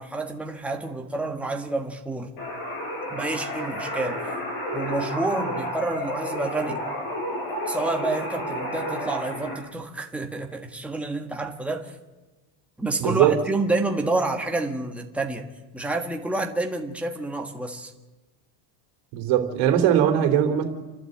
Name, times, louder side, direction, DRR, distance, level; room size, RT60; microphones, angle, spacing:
voice 1, 0.0-2.3 3.1-4.2 4.7-6.8 7.6-12.0 12.8-15.5 15.7-17.9, right 2 dB, 5° right, 2 dB, 1.5 m, -29 dB
sound 1, 2.4-9.6, equal, 45° left, 7.3 m, -31 dB
voice 2, 13.0-13.3 19.1-20.6, right 10 dB, 55° right, 5 dB, 3.4 m, -20 dB
29.5 x 12.0 x 8.0 m, 1.1 s
cardioid pair, 155°, 49 cm